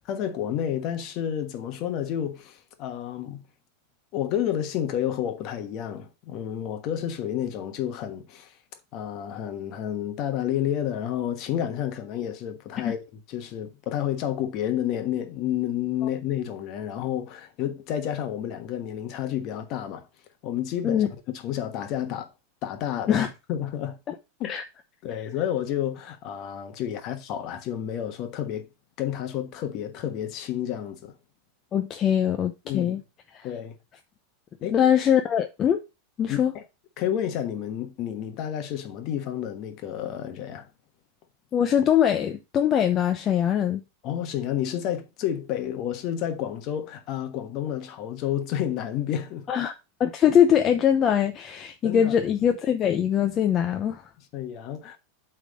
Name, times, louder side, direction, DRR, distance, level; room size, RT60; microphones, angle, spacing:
voice 1, 0.1-3.4 4.1-8.6 8.9-20.1 20.4-22.3 22.6-24.0 24.4-24.5 25.0-28.7 29.0-31.1 32.6-33.0 33.4-33.8 34.6-34.8 36.3-36.6 37.0-40.7 44.0-49.5 51.8-52.2 54.3-55.0, left 10 dB, 40° left, 1.2 m, -30 dB
voice 2, 31.7-33.0 34.7-35.8 36.2-36.5 41.5-43.8 49.5-49.7 50.0-54.0, left 9 dB, 25° left, 0.6 m, -22 dB
8.2 x 3.6 x 5.2 m
supercardioid pair, 150°, 0 cm